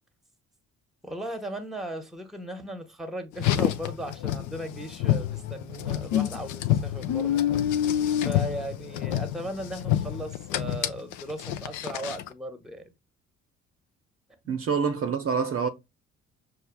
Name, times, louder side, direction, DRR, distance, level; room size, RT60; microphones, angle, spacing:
voice 1, 1.0-7.4 8.2-12.9, right 1 dB, ahead, 1.0 m, -37 dB
Car, 3.3-12.3, left 11 dB, 50° left, 0.5 m, -28 dB
voice 2, 14.5-15.7, right 6 dB, 35° right, 0.7 m, -26 dB
6.5 x 2.4 x 2.2 m
figure-of-eight pair, 45°, 38 cm